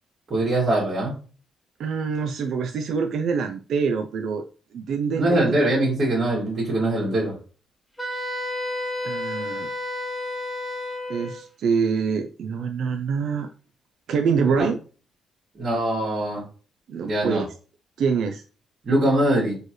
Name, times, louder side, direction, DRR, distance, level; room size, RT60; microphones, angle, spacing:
voice 1, 0.3-1.1 5.2-7.3 14.5-14.7 15.6-16.4 17.0-17.4 18.8-19.6, right 1 dB, 45° right, -5 dB, 1.9 m, -22 dB
voice 2, 1.8-4.5 4.7-5.6 9.0-9.7 11.1-13.5 14.1-14.8 16.9-17.5 18.0-18.4, right 5 dB, 70° right, 6 dB, 0.4 m, -25 dB
Wind instrument woodwind instrument, 8.0-11.4, left 1 dB, 15° left, 1.6 m, -31 dB
4.4 x 3.2 x 3.0 m, 0.37 s
cardioid pair, 90°, 0 cm